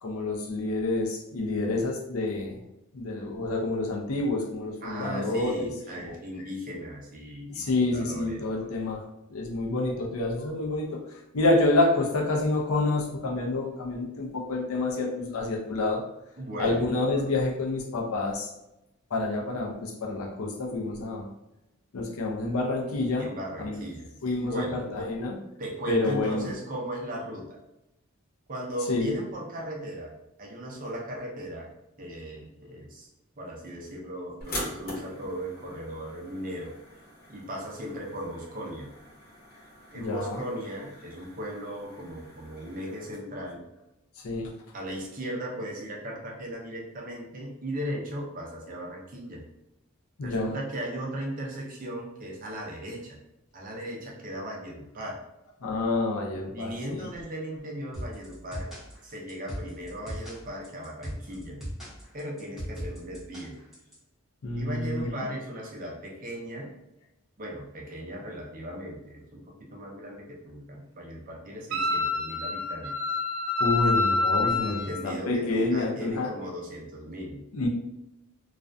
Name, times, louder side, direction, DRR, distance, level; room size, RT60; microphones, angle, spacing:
voice 1, 0.0-2.6 2.9-5.7 7.6-9.0 9.3-11.0 11.3-16.0 16.6-18.5 19.1-21.3 21.9-23.3 23.6-23.8 24.2-24.6 24.9-25.4 25.9-26.5 28.9-29.1 39.9-40.4 44.2-44.5 50.2-50.5 55.6-57.1 64.4-65.0 73.6-76.3 77.5-77.7, left 2 dB, 80° left, 0 dB, 0.5 m, -28 dB
voice 2, 4.8-8.5 16.4-17.4 23.2-24.1 24.4-24.9 25.6-27.6 28.5-30.1 30.4-31.7 32.0-33.1 33.4-36.8 37.3-38.9 39.9-43.6 44.7-49.4 50.2-53.2 53.5-55.2 56.5-58.7 59.0-61.6 62.1-63.6 64.5-66.7 67.4-73.0 74.4-77.4, equal, 40° right, -2 dB, 0.5 m, -37 dB
sound 1, 34.4-43.2, left 1 dB, 45° left, 0.9 m, -43 dB
sound 2, 57.9-63.9, equal, ahead, 0.7 m, -38 dB
Wind instrument woodwind instrument, 71.7-74.9, left 3 dB, 90° right, 0.5 m, -27 dB
2.4 x 2.2 x 2.5 m, 0.91 s
head